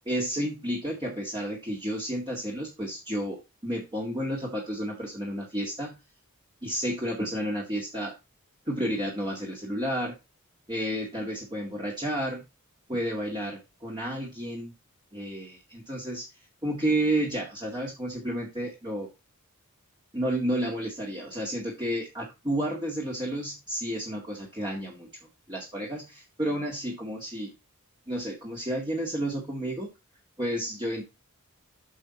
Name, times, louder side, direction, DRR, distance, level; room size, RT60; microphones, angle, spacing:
voice 1, 0.1-6.0 6.6-8.1 8.7-10.1 10.7-12.4 12.9-14.7 15.1-16.2 16.6-19.1 20.1-25.1 25.5-27.5 28.1-29.9 30.4-31.0, right 1 dB, 20° right, -3 dB, 2.0 m, -31 dB
8.3 x 6.4 x 4.3 m, 0.24 s
head